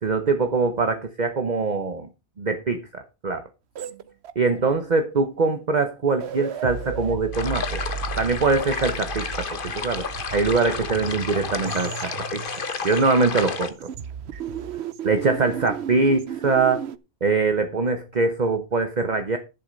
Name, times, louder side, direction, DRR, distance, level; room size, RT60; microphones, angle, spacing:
voice 1, 0.0-2.1 2.4-3.4 4.3-7.8 8.2-12.4 12.8-13.7 15.0-16.8 17.2-19.4, right 3 dB, 45° right, 1.1 m, -23 dB
sound 1, 3.7-4.7 5.7-5.8 6.1-13.5 13.8-17.0, right 8 dB, 90° right, 1.0 m, -34 dB
sound 2, 7.3-13.7, left 5 dB, 55° left, 1.2 m, -31 dB
11.0 x 7.3 x 5.2 m
omnidirectional pair, 1.1 m